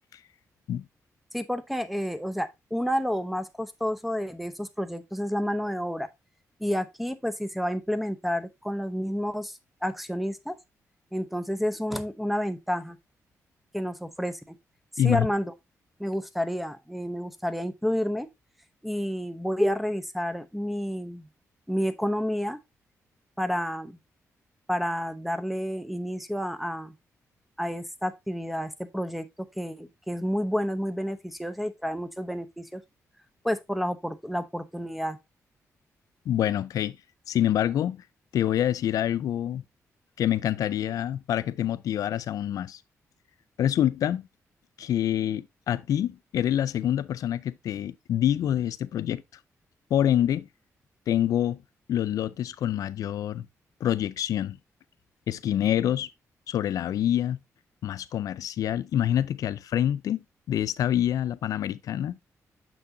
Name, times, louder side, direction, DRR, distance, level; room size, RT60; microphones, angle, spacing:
voice 1, 1.3-6.1 6.6-10.6 11.1-13.0 13.7-14.5 15.0-15.5 16.0-18.3 18.8-21.3 21.7-22.6 23.4-24.0 24.7-26.9 27.6-29.3 29.6-32.8 33.4-35.2, equal, ahead, 0.7 m, -30 dB
voice 2, 15.0-15.3 36.3-37.0 37.3-38.0 38.3-39.6 40.2-42.8 43.6-44.3 44.8-49.2 49.9-50.5 51.1-51.6 51.9-53.5 53.8-54.6 55.3-56.1 56.5-57.4 57.8-62.2, left 11 dB, 80° left, 0.4 m, -26 dB
6.8 x 6.0 x 2.7 m
cardioid pair, 100°, 6 cm